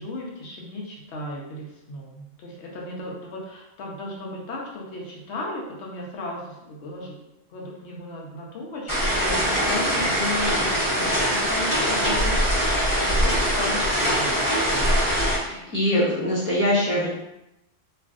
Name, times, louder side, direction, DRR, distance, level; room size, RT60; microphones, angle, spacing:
voice 1, 0.0-7.2 7.5-14.5, left 2 dB, 65° left, -2 dB, 0.9 m, -35 dB
sound 1, 8.9-15.4, equal, 25° left, 1.0 m, -22 dB
voice 2, 15.2-17.1, left 1 dB, 10° right, -10 dB, 0.7 m, -23 dB
3.1 x 2.5 x 2.4 m, 0.91 s
omnidirectional pair, 1.3 m